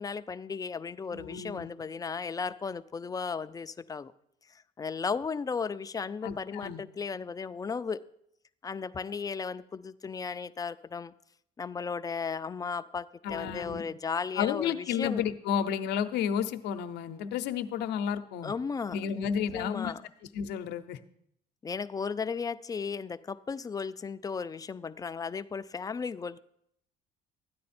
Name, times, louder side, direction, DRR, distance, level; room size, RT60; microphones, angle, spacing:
voice 1, 0.0-4.1 4.8-8.0 8.6-11.1 11.6-15.2 18.4-19.3 19.5-20.0 21.6-26.4, left 5 dB, 20° left, 12 dB, 0.4 m, -35 dB
voice 2, 1.1-1.7 6.2-6.8 13.2-13.8 14.4-18.5 18.9-19.9 20.3-21.0, left 8 dB, 85° left, 9 dB, 0.7 m, -32 dB
13.5 x 9.5 x 4.3 m, 0.74 s
cardioid pair, 110°, 17 cm